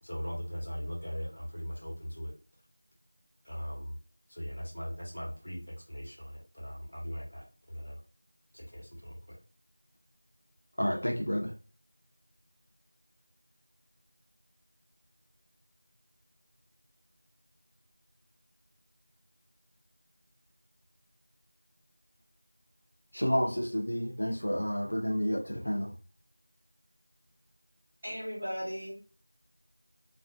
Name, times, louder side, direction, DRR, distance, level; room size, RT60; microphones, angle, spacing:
voice 1, 0.0-2.3 3.4-4.0 4.3-8.0 8.5-9.4, equal, 55° left, 1.2 m, -39 dB
voice 2, 10.8-11.5 23.1-25.9, equal, 70° left, 0.7 m, -30 dB
voice 3, 28.0-29.0, equal, 10° right, 1.2 m, -36 dB
2.5 x 2.4 x 2.3 m
figure-of-eight pair, 175°, 0 cm